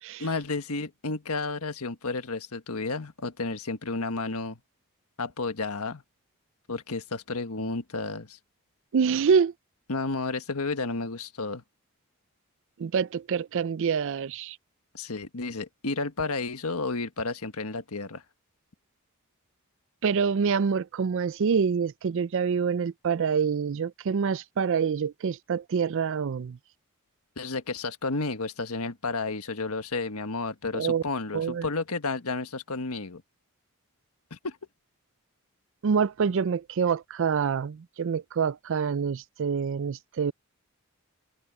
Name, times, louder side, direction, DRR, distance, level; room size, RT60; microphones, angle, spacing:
voice 1, 0.2-4.6 5.2-6.0 6.7-8.4 9.9-11.6 14.9-18.2 27.4-33.2 34.3-34.6, left 3 dB, 80° left, 1.5 m, -32 dB
voice 2, 8.9-9.5 12.8-14.6 20.0-26.6 30.7-31.0 31.3-31.6 35.8-40.3, right 6 dB, 60° right, 0.4 m, -26 dB
head